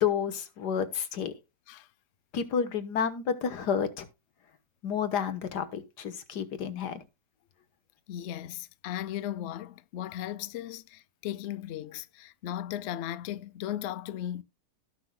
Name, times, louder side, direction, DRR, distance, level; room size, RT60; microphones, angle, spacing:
voice 1, 0.0-1.3 2.3-4.1 4.8-7.0, left 7 dB, 90° left, 1.8 m, -30 dB
voice 2, 8.1-14.4, left 11 dB, 60° left, 0.7 m, -36 dB
17.0 x 5.9 x 2.2 m
omnidirectional pair, 1.7 m